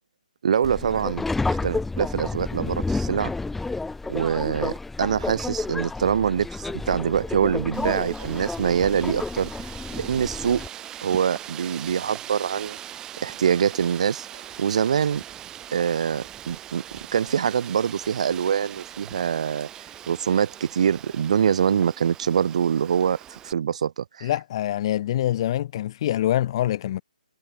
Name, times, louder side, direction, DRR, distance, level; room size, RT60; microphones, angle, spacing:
voice 1, 0.4-3.3 4.1-4.7 5.0-9.5 9.9-10.7 11.0-12.8 13.2-14.3 14.6-15.2 15.7-16.8 17.1-19.7 20.1-24.3, right 8 dB, 50° right, 7.1 m, -24 dB
Subway metro underground, 0.6-10.7, left 3 dB, 5° left, 4.2 m, -30 dB
Wind, 7.7-23.5, right 11 dB, 15° right, 5.7 m, -41 dB
voice 2, 24.2-27.0, left 12 dB, 35° left, 5.7 m, -25 dB
figure-of-eight pair, 140°, 5 cm